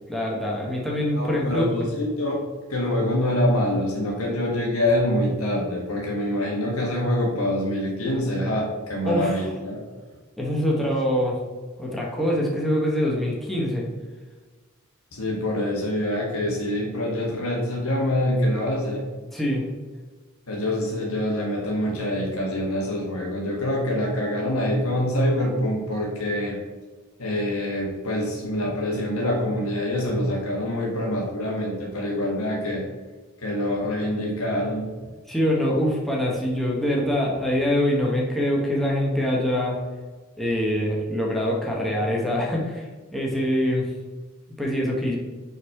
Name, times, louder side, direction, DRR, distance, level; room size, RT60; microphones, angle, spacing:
voice 1, 0.1-1.8 9.0-9.4 10.4-11.4 11.8-13.8 19.3-19.6 35.3-39.8 40.4-43.8 44.6-45.2, equal, ahead, -3 dB, 1.1 m, -24 dB
voice 2, 1.1-2.4 2.7-9.8 15.1-19.0 20.5-26.6 27.2-32.8 33.4-34.9, left 1 dB, 85° left, -2 dB, 1.5 m, -25 dB
5.8 x 4.0 x 4.7 m, 1.3 s
head